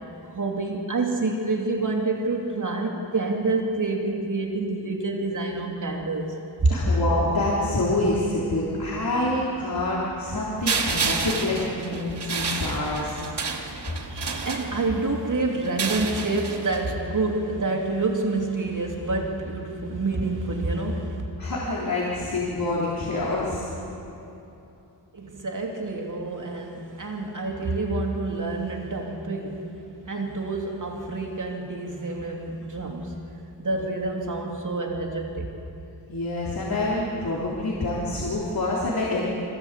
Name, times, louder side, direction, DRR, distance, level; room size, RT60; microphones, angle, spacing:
voice 1, 0.3-6.7 14.1-21.2 25.1-29.8 30.1-33.2 33.6-35.5, right 3 dB, 45° right, 3.0 m, -27 dB
voice 2, 6.7-13.2 21.4-23.7 36.1-39.3, left 2 dB, 55° left, 3.6 m, -26 dB
sound 1, 10.7-15.1 15.6-16.9, right 4 dB, 75° right, 2.4 m, -30 dB
26.0 x 16.0 x 8.3 m
wide cardioid pair, 95°, 41 cm